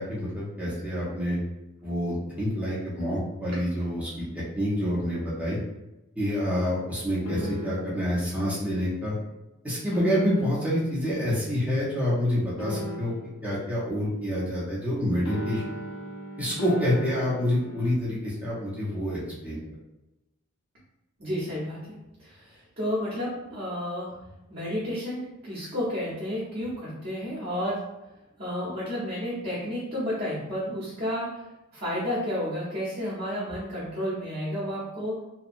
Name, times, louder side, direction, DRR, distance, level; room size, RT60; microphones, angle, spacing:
voice 1, 0.0-1.4 1.8-5.6 6.2-9.1 9.6-13.1 13.4-15.6 16.4-19.6, equal, 5° right, -8 dB, 0.7 m, -27 dB
sound 1, 7.3-8.0 9.9-10.7 12.6-13.4 15.3-17.9, equal, 80° left, 0.5 m, -36 dB
voice 2, 21.2-24.2 24.5-27.9 28.4-31.4 31.7-35.2, equal, 45° right, -10 dB, 0.9 m, -31 dB
2.8 x 2.2 x 2.5 m, 0.96 s
head